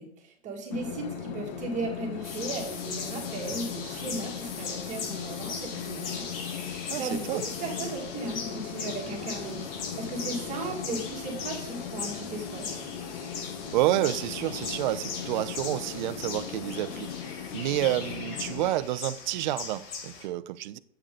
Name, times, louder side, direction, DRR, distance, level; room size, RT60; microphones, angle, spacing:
voice 1, 0.0-12.8, right 2 dB, 25° right, 2.2 m, -36 dB
sound 1, 0.7-18.7, left 8 dB, 50° left, 1.2 m, -39 dB
sound 2, 1.0-17.0, left 2 dB, 20° left, 1.6 m, -50 dB
at night in the jungle - little river in background, 2.2-20.2, left 5 dB, 65° left, 4.0 m, -39 dB
voice 2, 6.9-7.4 13.7-17.1 17.5-20.8, right 14 dB, 45° right, 0.6 m, -29 dB
11.0 x 8.1 x 3.8 m
hypercardioid pair, 145°, 32 cm